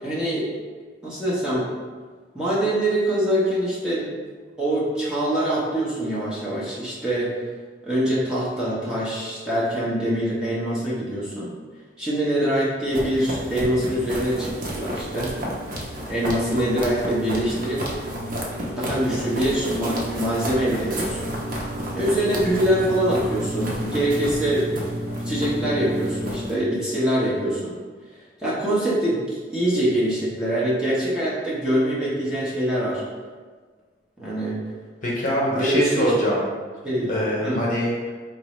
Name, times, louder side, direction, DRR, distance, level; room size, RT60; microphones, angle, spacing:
voice 1, 0.0-0.5 1.0-1.6 2.3-4.1 4.6-7.3 7.8-11.6 12.0-15.3 16.1-17.8 18.8-21.3 21.9-24.6 25.2-27.8 28.4-33.0 34.2-34.5 35.5-36.1 36.8-37.1 37.4-37.6, right 1 dB, 5° right, -9 dB, 0.8 m, -24 dB
sound 1, 12.9-26.5, equal, 50° right, 0.7 m, -30 dB
voice 2, 35.0-36.4 37.1-38.1, equal, 45° left, -4 dB, 0.8 m, -23 dB
4.1 x 2.6 x 3.1 m, 1.5 s
head